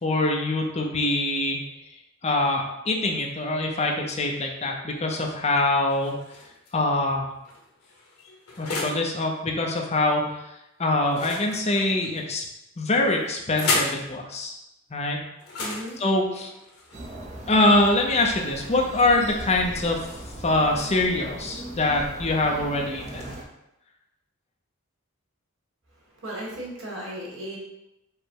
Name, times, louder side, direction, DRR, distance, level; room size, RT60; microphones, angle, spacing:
voice 1, 0.0-1.6 2.2-6.1 6.7-7.3 8.6-10.5 10.8-12.5 12.8-14.6 14.9-15.2 16.0-16.5 17.5-20.0 20.4-23.3, left 2 dB, 30° left, 1 dB, 0.6 m, -24 dB
sound 1, 5.9-6.7 7.4-9.1 11.1-12.2 13.0-14.0 15.4-17.4, left 3 dB, 85° left, 1.0 m, -32 dB
voice 2, 15.6-16.0 26.2-27.6, right 1 dB, 60° right, -3 dB, 1.4 m, -35 dB
sound 2, 16.9-23.4, right 1 dB, 30° right, 0.6 m, -39 dB
5.0 x 2.1 x 4.4 m, 0.88 s
head